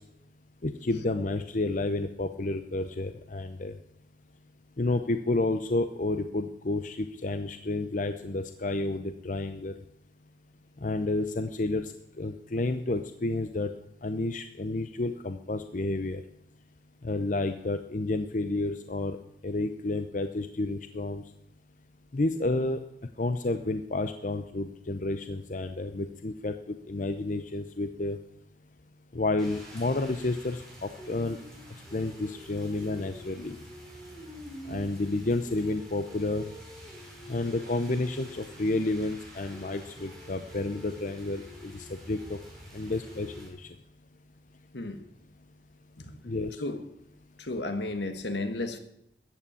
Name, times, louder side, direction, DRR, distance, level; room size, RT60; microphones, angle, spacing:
voice 1, 0.6-3.8 4.8-9.7 10.8-13.7 14.0-16.2 17.0-19.2 19.4-21.2 22.1-22.8 23.2-28.2 29.1-31.4 31.9-33.6 34.7-36.5 37.3-42.4 42.7-43.7 46.2-46.6, left 2 dB, 45° left, 0.7 m, -30 dB
Rain, 29.4-43.5, equal, 5° left, 4.6 m, -47 dB
voice 2, 44.7-45.0 46.0-46.1 46.6-46.8 47.4-48.8, left 2 dB, 75° left, 1.4 m, -33 dB
14.0 x 8.7 x 8.6 m
head